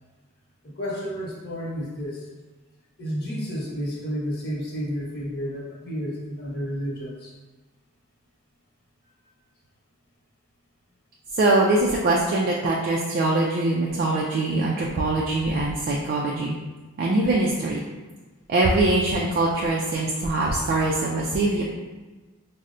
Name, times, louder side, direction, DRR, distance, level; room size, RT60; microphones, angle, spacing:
voice 1, 0.8-2.2 3.0-7.3, equal, 50° left, -5 dB, 1.0 m, -31 dB
voice 2, 11.4-16.6 17.0-17.8 18.5-21.6, right 2 dB, 40° right, -3 dB, 0.3 m, -23 dB
5.4 x 2.0 x 2.5 m, 1.3 s
head